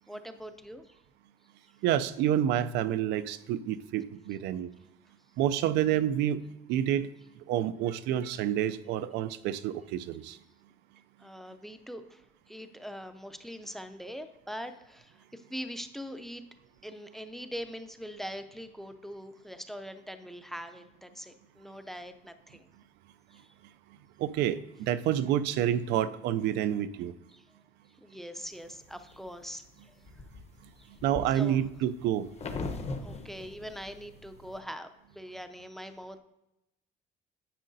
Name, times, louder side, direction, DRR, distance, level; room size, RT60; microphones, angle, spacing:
voice 1, 0.1-1.0 11.2-16.4 16.8-22.7 23.3-23.5 27.3-27.4 28.0-30.0 30.8-31.0 31.3-31.6 33.0-36.2, equal, ahead, 10 dB, 0.5 m, -42 dB
voice 2, 1.8-4.7 5.4-6.4 6.7-7.1 7.5-10.4 24.2-27.1 31.0-32.3, right 11 dB, 85° right, 14 dB, 0.4 m, -28 dB
sound 1, 28.6-29.3 29.8-34.6, left 3 dB, 40° left, 0.9 m, -40 dB
9.9 x 7.4 x 2.7 m, 0.93 s
cardioid pair, 110°, 17 cm